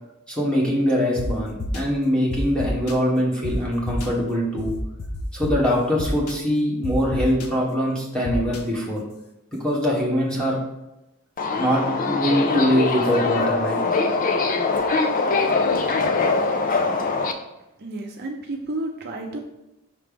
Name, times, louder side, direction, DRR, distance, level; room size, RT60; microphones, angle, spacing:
voice 1, 0.3-4.7 5.3-9.0 9.6-10.6 11.6-13.8, equal, 5° left, -5 dB, 1.4 m, -23 dB
sound 1, 1.2-1.3 1.6-1.8 2.3-2.9 3.4-3.5 3.9-4.1 4.6-5.5 6.0-6.3 6.8-7.5 8.2-8.6, left 3 dB, 85° left, 0.8 m, -31 dB
Subway metro underground, 11.4-17.3, left 3 dB, 40° left, 0.5 m, -22 dB
voice 2, 17.8-19.4, right 2 dB, 45° right, 1 dB, 0.6 m, -31 dB
5.9 x 3.2 x 5.1 m, 0.93 s
head